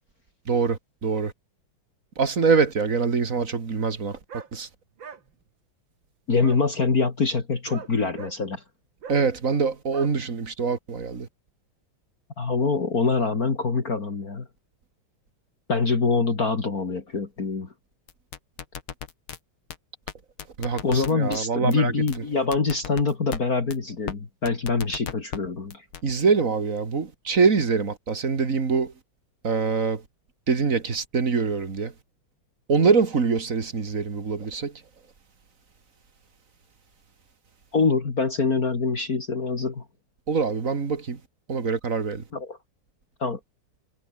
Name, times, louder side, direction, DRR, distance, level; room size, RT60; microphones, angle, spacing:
voice 1, 0.5-1.3 2.2-4.2 4.5-4.7 9.1-11.3 20.6-21.9 26.0-28.9 29.4-30.0 30.5-31.9 32.7-34.7 40.3-41.2 41.5-42.2, right 5 dB, 40° right, 2.5 m, -24 dB
sound 1, 4.3-4.5 5.0-5.2 6.4-6.6 7.7-8.3 9.0-9.2 9.9-10.1, right 6 dB, 65° right, 2.9 m, -39 dB
voice 2, 6.3-8.6 12.4-14.5 15.7-17.7 20.8-25.8 37.7-39.8 42.3-42.6 43.2-43.4, left 4 dB, 45° left, 2.9 m, -24 dB
sound 2, 18.1-19.4 19.7-19.8 20.1-20.2 20.4-21.4 21.7-21.8 22.1-22.2 22.5-23.4 23.7-23.8 24.1-24.2 24.5-25.4 25.7-26.0, left 8 dB, 80° left, 2.6 m, -35 dB
omnidirectional pair, 2.3 m